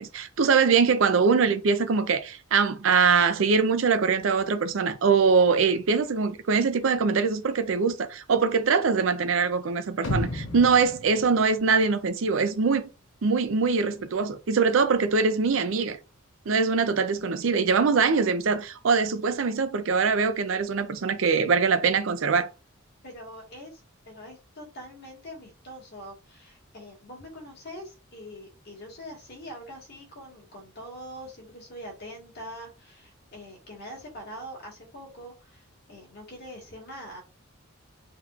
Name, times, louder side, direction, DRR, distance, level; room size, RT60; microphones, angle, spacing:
voice 1, 0.0-12.9 13.2-16.0 16.5-22.5, right 5 dB, 65° right, 0.5 m, -23 dB
sound 1, 10.0-12.2 12.6-12.7, left 1 dB, 75° left, 0.8 m, -33 dB
voice 2, 23.0-23.8 24.0-37.2, equal, 50° left, 1.6 m, -43 dB
3.6 x 3.0 x 2.4 m
head